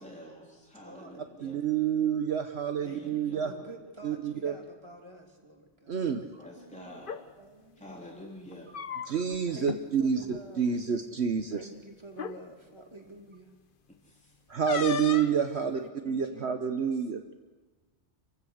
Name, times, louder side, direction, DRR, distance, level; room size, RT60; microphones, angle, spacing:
voice 1, 0.0-1.6 2.8-3.8 6.3-7.2 7.8-8.7 14.0-14.4, equal, 5° left, -3 dB, 3.4 m, -48 dB
voice 2, 0.8-1.2 2.8-6.3 6.6-6.9 7.4-7.8 9.5-11.1 11.5-13.5 15.6-16.6, right 1 dB, 20° right, 1 dB, 3.1 m, -49 dB
voice 3, 1.4-3.5 4.0-4.5 5.9-6.4 9.0-10.2 10.6-11.6 14.5-17.2, right 7 dB, 65° right, 6 dB, 1.3 m, -28 dB
sound 1, 6.9-7.2 8.5-9.4 9.6-9.8 10.2-10.4 11.4-11.5 12.1-12.4 14.7-15.4, left 6 dB, 50° left, 1.0 m, -34 dB
29.0 x 16.0 x 6.6 m, 1.3 s
omnidirectional pair, 1.2 m